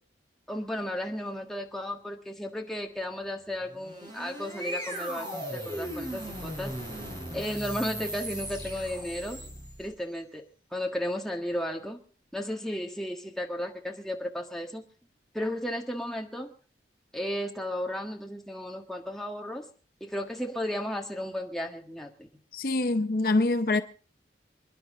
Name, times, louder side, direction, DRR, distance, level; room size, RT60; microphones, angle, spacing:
voice 1, 0.5-6.7 7.3-9.4 9.8-10.4 10.7-12.0 12.3-14.8 15.3-16.5 17.1-19.6 20.0-22.3, equal, ahead, 1.6 m, -34 dB
sound 1, 3.6-10.0, right 1 dB, 25° right, 5.1 m, -38 dB
voice 2, 22.5-23.8, left 2 dB, 55° left, 0.7 m, -25 dB
28.0 x 10.5 x 3.8 m
head